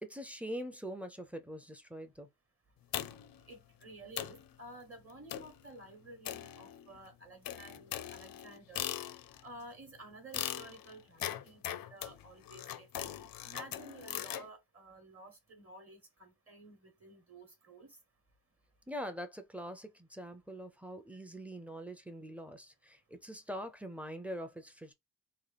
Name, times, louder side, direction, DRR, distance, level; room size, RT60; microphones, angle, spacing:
voice 1, 0.0-2.3 18.9-24.9, equal, 5° right, 0.4 m, -43 dB
sound 1, 2.9-3.4 3.8-3.9 4.2-4.5 5.3-5.6 6.2-7.0 7.4-9.5 10.3-14.5, left 11 dB, 70° left, 0.5 m, -40 dB
voice 2, 3.5-8.9 9.4-17.9, right 1 dB, 40° right, 1.0 m, -52 dB
3.7 x 2.2 x 3.3 m
wide cardioid pair, 135°, 36 cm